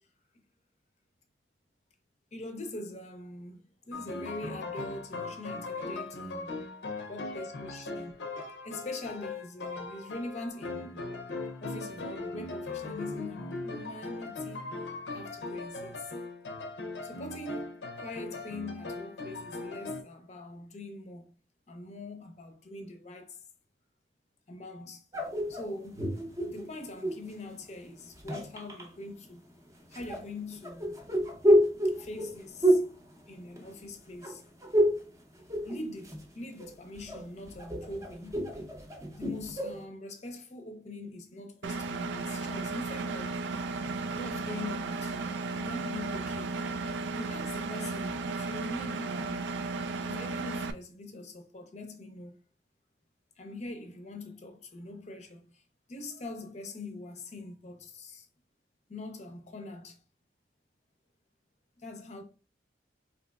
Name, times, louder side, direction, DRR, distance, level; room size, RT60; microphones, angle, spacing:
voice 1, 2.3-6.7 7.1-8.2 8.6-11.1 11.6-16.1 17.0-21.3 21.7-23.4 24.5-25.1 25.5-26.1 26.5-29.4 29.9-31.0 31.8-32.8 33.3-34.5 35.6-38.5 39.1-43.4 44.1-46.8 47.1-49.6 50.0-52.3 53.4-55.6 55.9-58.3 58.9-60.0 61.8-62.2, left 2 dB, 40° left, 0.6 m, -43 dB
sound 1, 3.9-20.0, left 3 dB, 80° left, 0.6 m, -39 dB
sound 2, 25.1-27.3 28.0-28.9 29.9-33.9 34.2-35.1 35.4-36.3 36.6-39.8, equal, 20° right, 0.6 m, -29 dB
Engine, 41.6-50.7, right 3 dB, 85° right, 0.3 m, -34 dB
4.0 x 2.8 x 2.2 m
head